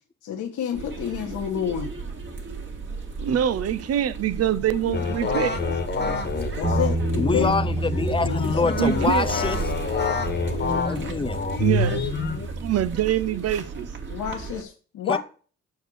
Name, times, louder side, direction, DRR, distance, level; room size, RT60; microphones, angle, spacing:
voice 1, 0.2-1.9 4.8-5.1 6.0-7.5 8.2-9.1 14.1-15.2, left 9 dB, 75° left, 1.5 m, -30 dB
sound 1, 0.7-14.6, right 4 dB, 40° right, 2.0 m, -35 dB
voice 2, 3.2-5.6 8.8-9.3 11.6-12.0 12.6-13.9, right 10 dB, 55° right, 0.7 m, -24 dB
sound 2, 4.9-12.5, left 4 dB, 35° left, 1.5 m, -27 dB
Bass guitar, 6.6-12.9, right 2 dB, 20° right, 1.3 m, -30 dB
voice 3, 7.2-9.6 10.9-11.4 15.1-15.2, left 4 dB, 20° left, 0.5 m, -25 dB
6.4 x 4.6 x 6.3 m
cardioid pair, 90°, 30 cm